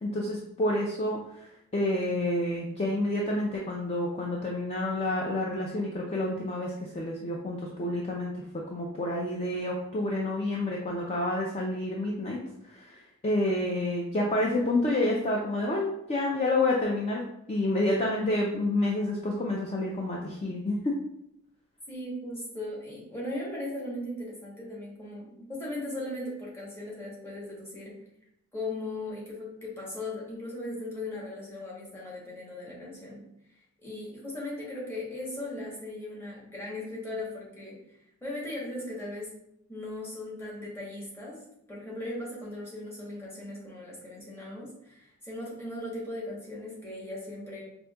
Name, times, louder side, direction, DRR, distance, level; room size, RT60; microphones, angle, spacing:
voice 1, 0.0-8.4 8.7-12.4 12.7-17.2 17.5-20.9, left 1 dB, 30° left, -2 dB, 0.4 m, -29 dB
voice 2, 21.9-28.0 28.5-33.3 33.8-37.8 38.2-39.3 39.7-41.4 41.7-47.6, left 1 dB, 10° left, -5 dB, 0.9 m, -38 dB
5.0 x 2.6 x 2.2 m, 0.81 s
head